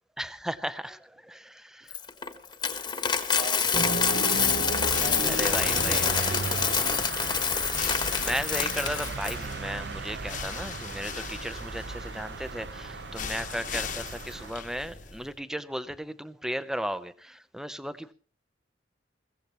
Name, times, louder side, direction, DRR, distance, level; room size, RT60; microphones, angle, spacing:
voice 1, 0.2-2.4 5.3-6.3 7.8-18.1, equal, 5° right, 13 dB, 0.6 m, -36 dB
Coin (dropping), 1.9-9.3, left 6 dB, 25° left, 1.2 m, -27 dB
voice 2, 3.4-4.3 5.0-7.1, right 2 dB, 45° right, 2 dB, 2.6 m, -40 dB
sound 1, 3.7-14.5, right 3 dB, 65° right, 0.8 m, -35 dB
sound 2, 4.7-15.4, left 6 dB, 45° left, 1.1 m, -40 dB
22.0 x 16.0 x 3.0 m, 0.39 s
head